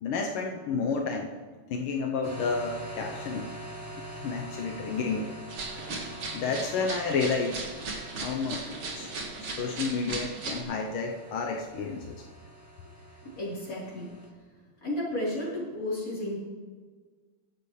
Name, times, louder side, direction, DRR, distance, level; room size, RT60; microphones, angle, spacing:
voice 1, 0.0-1.3 1.7-3.5 4.1-5.3 5.8-5.9 6.2-7.6 8.2-8.7 8.9-9.1 9.4-12.0, left 4 dB, 85° left, 1 dB, 1.8 m, -31 dB
sound 1, 2.2-14.3, right 1 dB, 10° right, 1.6 m, -44 dB
sound 2, 5.5-10.6, right 3 dB, 90° right, 2.8 m, -37 dB
voice 2, 13.4-14.1 14.8-16.4, left 1 dB, 40° left, -7 dB, 4.4 m, -32 dB
22.0 x 7.7 x 3.2 m, 1.5 s
omnidirectional pair, 2.3 m